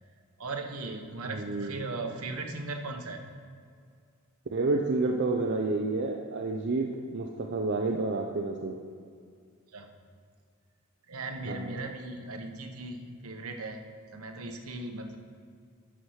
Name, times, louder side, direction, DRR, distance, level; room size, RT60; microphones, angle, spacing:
voice 1, 0.4-3.2 9.7-9.9 11.1-13.8 14.1-15.2, right 2 dB, 70° right, 4 dB, 1.1 m, -38 dB
voice 2, 1.3-1.8 4.5-8.8 11.4-11.8, right 3 dB, 50° right, 0 dB, 0.6 m, -30 dB
12.0 x 4.8 x 6.4 m, 2.2 s
head